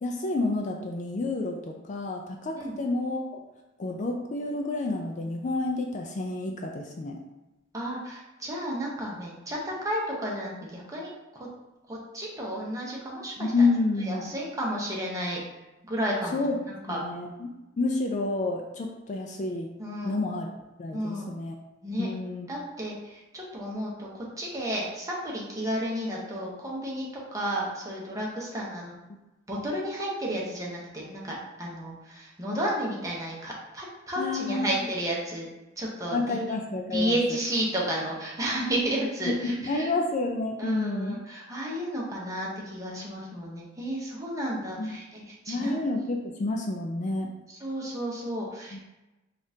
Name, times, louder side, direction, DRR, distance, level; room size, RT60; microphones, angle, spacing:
voice 1, 0.0-3.4 3.8-7.2 13.4-14.3 16.3-16.5 16.9-17.5 17.8-19.7 20.0-20.5 20.8-21.6 22.0-22.5 29.1-29.2 34.2-34.9 36.1-37.2 39.3-41.2 44.8-45.0 45.5-47.3 48.7-48.8, left 2 dB, 40° left, 2 dB, 0.3 m, -29 dB
voice 2, 7.7-11.5 11.9-13.7 14.0-15.4 15.9-17.0 19.8-20.2 20.9-21.3 21.8-22.1 22.5-28.9 29.5-35.5 35.8-36.6 36.9-39.9 40.6-45.8 47.5-48.8, right 1 dB, 15° right, -4 dB, 0.8 m, -32 dB
5.1 x 2.4 x 2.7 m, 1.0 s
head